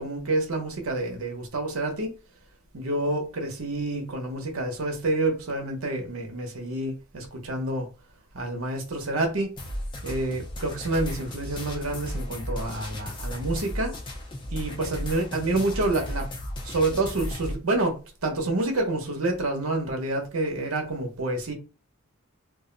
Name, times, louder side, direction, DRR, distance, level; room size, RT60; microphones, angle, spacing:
voice 1, 0.0-2.1 2.7-7.9 8.3-9.5 10.0-14.0 14.5-16.3 16.6-21.5, right 2 dB, 80° right, 0.9 m, -28 dB
sound 1, 9.6-17.6, left 1 dB, 25° left, 0.5 m, -35 dB
2.5 x 2.1 x 3.8 m
head